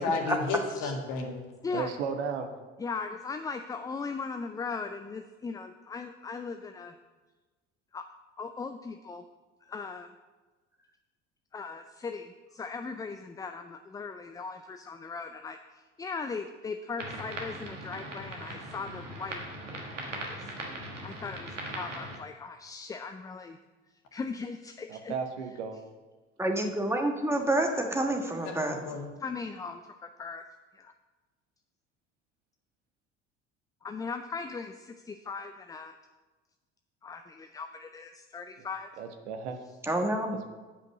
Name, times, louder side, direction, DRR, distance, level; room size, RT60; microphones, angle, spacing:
voice 1, 0.0-1.5 28.4-29.1, left 4 dB, 55° left, 2 dB, 1.8 m, -32 dB
voice 2, 1.7-2.5 24.9-25.8 38.6-38.7 39.0-39.6, right 6 dB, 70° right, 6 dB, 1.1 m, -34 dB
voice 3, 2.8-6.9 7.9-8.0 8.4-9.2 9.7-10.1 11.5-15.6 16.0-19.4 20.1-20.5 21.0-23.6 24.1-25.1 29.2-30.4 30.7-30.9 33.8-35.9 37.0-38.9, left 4 dB, 10° left, 7 dB, 0.3 m, -38 dB
sound 1, 17.0-22.2, right 1 dB, 85° right, 1.5 m, -40 dB
voice 4, 26.4-28.8 39.9-40.4, right 1 dB, 5° right, 2 dB, 1.4 m, -28 dB
8.6 x 5.2 x 6.3 m, 1.3 s
figure-of-eight pair, 60°, 36 cm